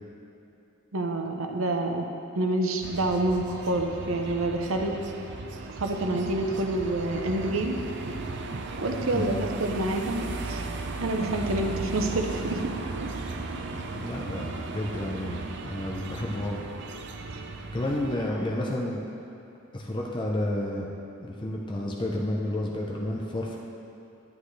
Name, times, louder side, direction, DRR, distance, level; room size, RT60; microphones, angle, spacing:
voice 1, 0.9-2.1 2.4-5.0 5.8-7.8 8.8-10.6 11.0-12.6, right 2 dB, 85° right, 3 dB, 0.9 m, -27 dB
sound 1, 2.8-18.3, right 3 dB, 60° right, 0.6 m, -36 dB
voice 2, 9.1-9.4 13.9-16.6 17.7-19.0 19.7-20.9 21.2-23.6, left 1 dB, 25° left, -2 dB, 0.7 m, -31 dB
11.0 x 10.0 x 3.3 m, 2.8 s
head